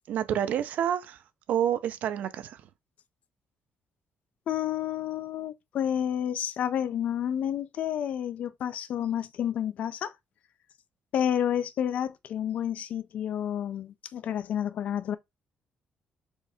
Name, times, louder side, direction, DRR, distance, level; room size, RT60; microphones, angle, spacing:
voice 1, 0.1-1.2 1.5-2.7, right 10 dB, 70° right, 0.5 m, -28 dB
voice 2, 4.5-10.1 11.1-15.2, left 10 dB, 55° left, 0.4 m, -30 dB
4.5 x 2.7 x 3.4 m
cardioid pair, 165°, 3 cm